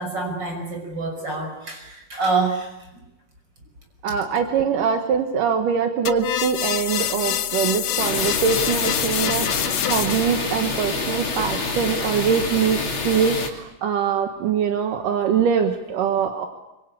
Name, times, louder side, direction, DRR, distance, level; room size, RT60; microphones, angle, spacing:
voice 1, 0.0-3.0, right 3 dB, 30° right, 5 dB, 6.1 m, -27 dB
voice 2, 4.0-16.5, right 7 dB, 80° right, 6 dB, 3.0 m, -23 dB
sound 1, 6.1-10.5, left 11 dB, 75° left, 2.6 m, -26 dB
sound 2, 8.0-13.5, left 3 dB, 40° left, 3.4 m, -27 dB
25.0 x 24.5 x 8.4 m, 0.94 s
omnidirectional pair, 3.8 m